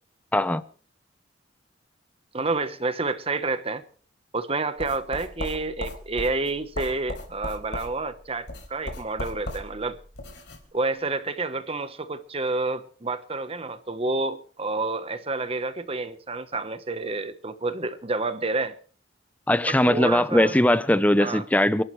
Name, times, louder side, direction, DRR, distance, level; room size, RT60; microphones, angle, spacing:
voice 1, 0.3-0.6 19.5-21.8, left 1 dB, 10° left, 0.8 m, -20 dB
voice 2, 2.3-3.8 4.3-10.0 10.7-18.8 19.7-20.5 21.2-21.4, right 3 dB, 30° right, 1.2 m, -29 dB
sound 1, 4.8-10.6, left 1 dB, 65° left, 4.2 m, -37 dB
29.5 x 12.0 x 3.3 m
head